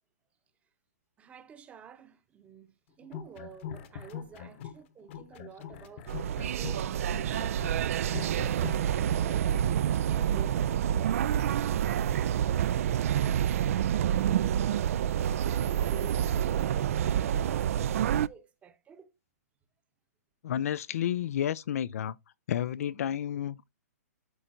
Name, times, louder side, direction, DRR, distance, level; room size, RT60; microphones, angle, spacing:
voice 1, 1.2-7.5 7.7-9.6 9.9-15.1 15.5-19.1, right 7 dB, 15° right, 0.8 m, -51 dB
sound 1, 3.0-4.8 5.1-8.8, left 8 dB, 45° left, 1.1 m, -42 dB
sound 2, 6.1-18.3, right 10 dB, 55° right, 0.4 m, -28 dB
voice 2, 20.4-22.1 22.5-23.7, left 10 dB, 60° left, 0.4 m, -31 dB
12.5 x 4.4 x 2.6 m
hypercardioid pair, 140°, 9 cm